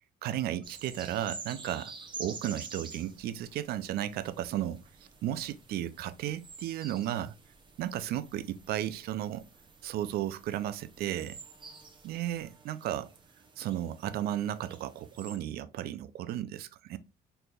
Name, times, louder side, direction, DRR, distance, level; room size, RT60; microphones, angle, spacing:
voice 1, 0.2-4.8 5.2-7.3 7.8-9.4 9.8-11.4 12.0-13.1 13.6-17.0, right 12 dB, 70° right, 0.4 m, -34 dB
sound 1, 0.6-15.4, right 4 dB, 30° right, 0.7 m, -49 dB
4.2 x 3.3 x 2.3 m
cardioid pair, 110°, 17 cm